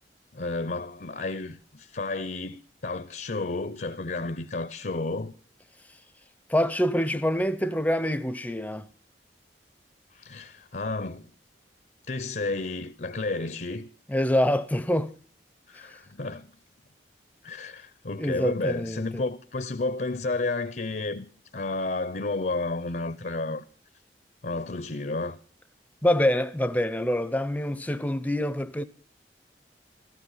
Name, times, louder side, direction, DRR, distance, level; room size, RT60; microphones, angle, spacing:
voice 1, 0.3-5.3 10.1-11.3 12.1-13.9 15.7-16.5 17.4-21.3 21.5-23.6 24.4-25.4, left 3 dB, 50° left, 0.7 m, -31 dB
voice 2, 6.5-8.9 14.1-15.1 18.2-19.2 26.0-28.8, left 1 dB, 10° left, 0.7 m, -25 dB
15.0 x 14.0 x 5.6 m
head